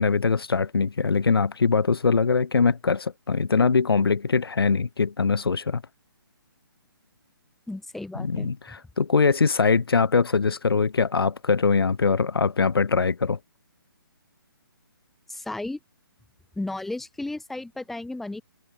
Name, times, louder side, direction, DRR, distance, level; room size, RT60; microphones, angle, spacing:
voice 1, 0.0-5.8 8.2-13.4, left 5 dB, 85° left, 5.4 m, -22 dB
voice 2, 7.7-8.5 15.3-15.8 16.6-18.4, left 2 dB, ahead, 2.5 m, -34 dB
hypercardioid pair, 170°, 12 cm